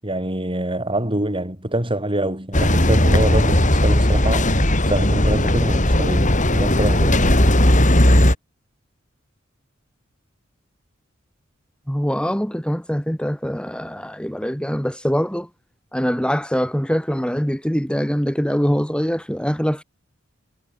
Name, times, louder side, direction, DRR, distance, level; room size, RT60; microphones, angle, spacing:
voice 1, 0.0-4.5 4.9-7.3, right 1 dB, 25° right, 7.9 m, -25 dB
sound 1, 2.5-8.4, left 1 dB, 40° left, 6.6 m, -16 dB
voice 2, 11.9-15.5 15.9-19.8, equal, 5° left, 3.7 m, -23 dB
head